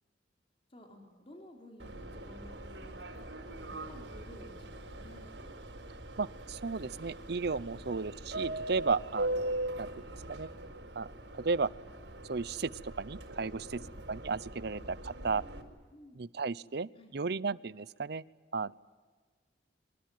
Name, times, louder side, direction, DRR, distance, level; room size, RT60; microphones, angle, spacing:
voice 1, 0.7-5.3 7.6-7.9 13.4-13.9 15.9-16.2 16.9-17.1, equal, 35° left, 1 dB, 4.0 m, -54 dB
Subway metro underground, 1.8-15.6, right 1 dB, 90° right, 4.5 m, -41 dB
voice 2, 6.2-10.0 10.3-10.5 11.0-11.1 11.3-11.7 12.3-13.8 14.1-15.4 16.2-18.2 18.5-18.7, right 4 dB, 65° right, 19 dB, 0.7 m, -34 dB
25.0 x 23.0 x 9.3 m, 1.4 s
head